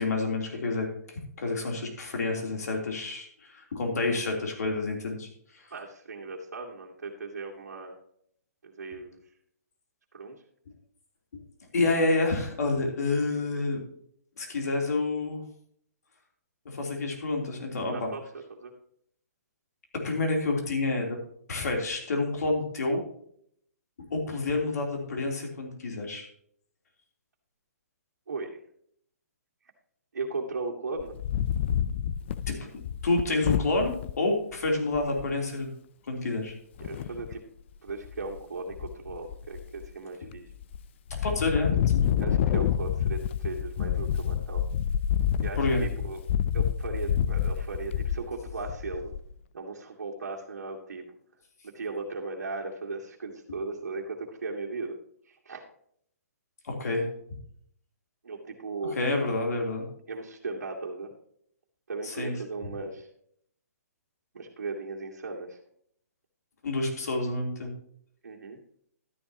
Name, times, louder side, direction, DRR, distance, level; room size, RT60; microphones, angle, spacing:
voice 1, 0.0-5.6 11.7-13.8 14.4-15.4 16.6-18.1 20.0-21.1 21.5-23.0 24.1-26.3 32.5-32.6 33.0-35.7 36.1-36.6 41.2-41.7 45.6-45.8 56.6-57.1 58.9-59.9 62.0-62.3 66.6-67.7, left 2 dB, 80° left, 1 dB, 3.2 m, -28 dB
voice 2, 5.7-8.0 8.6-9.2 10.1-10.4 17.9-18.7 24.6-24.7 28.3-28.6 30.1-31.2 36.8-37.4 37.8-40.4 42.2-44.6 45.4-46.2 46.5-49.1 49.5-51.1 51.7-55.0 55.3-55.6 58.2-59.0 60.1-61.1 61.9-63.1 64.3-65.6 68.2-68.6, right 3 dB, 90° right, -3 dB, 2.0 m, -37 dB
Wind, 31.0-34.1 34.6-34.7 34.9-35.3 36.8-37.4 37.9-38.4 38.7-39.9 40.3-40.8 41.1-49.3, left 9 dB, 45° left, 0.5 m, -28 dB
12.5 x 9.8 x 2.9 m, 0.67 s
hypercardioid pair, 155°, 9 cm